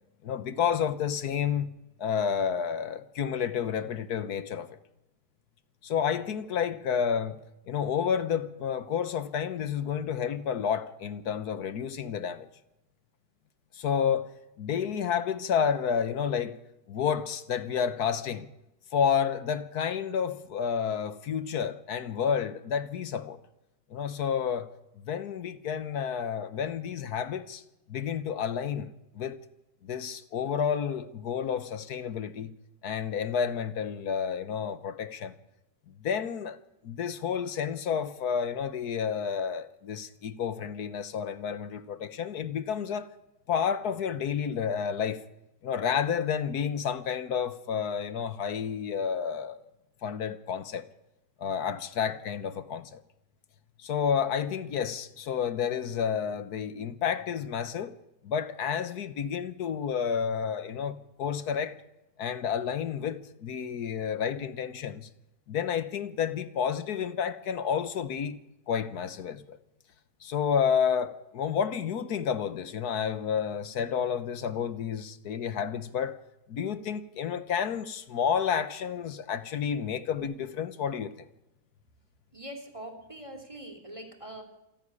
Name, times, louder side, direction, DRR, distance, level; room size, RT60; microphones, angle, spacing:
voice 1, 0.2-1.7 2.0-4.7 5.8-7.4 7.7-12.5 13.7-14.3 14.6-16.6 16.9-18.5 18.9-23.4 23.9-24.7 25.0-27.6 27.9-29.4 29.8-32.5 32.8-35.3 35.9-36.6 36.8-43.1 43.5-45.2 45.6-49.6 50.0-50.9 51.4-53.0 53.8-57.9 58.2-61.8 62.2-65.1 65.5-68.4 68.7-69.6 70.2-76.2 76.5-81.1, left 7 dB, 65° left, 1.5 m, -30 dB
voice 2, 82.3-84.4, right 1 dB, 20° right, 2.8 m, -43 dB
27.0 x 11.5 x 9.8 m
omnidirectional pair, 1.8 m